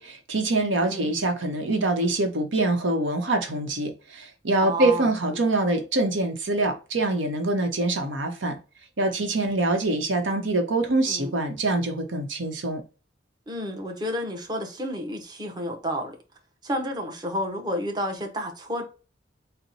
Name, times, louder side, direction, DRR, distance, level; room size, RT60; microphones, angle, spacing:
voice 1, 0.0-8.6 9.0-12.8, right 2 dB, 90° right, 0.9 m, -25 dB
voice 2, 0.8-1.1 4.6-5.4 11.1-11.4 13.5-16.2 16.6-18.9, equal, 25° right, 0.8 m, -31 dB
4.2 x 2.1 x 4.0 m
head